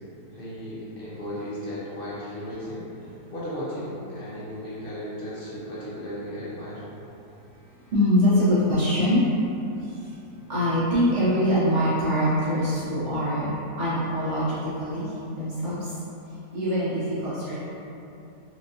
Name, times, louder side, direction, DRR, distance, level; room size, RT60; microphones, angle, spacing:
voice 1, 0.3-3.0 3.3-6.8, equal, 60° left, -9 dB, 0.5 m, -35 dB
voice 2, 7.9-9.2 9.8-10.1 10.5-16.0 16.5-17.6, equal, 50° right, -11 dB, 1.1 m, -24 dB
4.5 x 2.5 x 2.6 m, 2.9 s
omnidirectional pair, 1.8 m